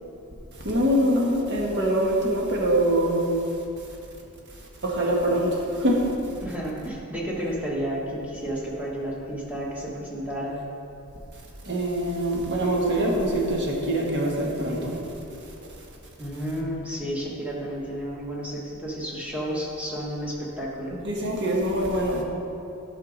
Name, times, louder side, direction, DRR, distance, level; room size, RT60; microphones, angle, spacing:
voice 1, 0.6-3.4 4.8-6.3 11.6-15.0 20.9-22.2, right 1 dB, 50° right, -2 dB, 1.4 m, -24 dB
voice 2, 6.4-10.6 16.2-21.0, equal, 5° right, -5 dB, 1.4 m, -31 dB
11.0 x 5.7 x 3.9 m, 2.7 s
head